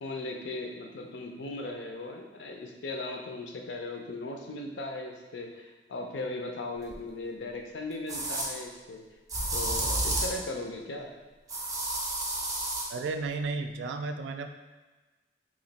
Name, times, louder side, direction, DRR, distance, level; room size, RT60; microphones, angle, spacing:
voice 1, 0.0-9.0 9.5-11.1, left 2 dB, 75° left, 2 dB, 0.5 m, -38 dB
sound 1, 6.9-7.0 8.1-8.5 9.3-10.4 11.5-12.9, right 1 dB, 20° right, 0.5 m, -30 dB
voice 2, 12.9-14.5, right 3 dB, 70° right, 6 dB, 0.3 m, -33 dB
3.1 x 2.4 x 4.0 m, 1.3 s
head